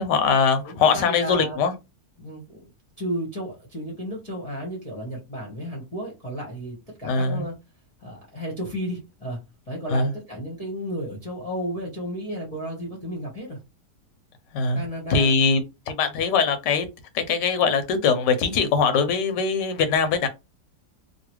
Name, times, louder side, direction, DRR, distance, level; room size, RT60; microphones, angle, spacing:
voice 1, 0.0-1.7 7.0-7.4 9.9-10.1 14.5-14.8 15.1-15.6 15.9-16.9 17.1-20.3, left 5 dB, 90° left, 1.3 m, -21 dB
voice 2, 0.6-1.6 2.2-2.7 3.0-7.6 8.0-9.4 9.7-13.6 14.7-15.4, equal, 25° left, 0.9 m, -33 dB
3.0 x 2.4 x 3.0 m
omnidirectional pair, 1.8 m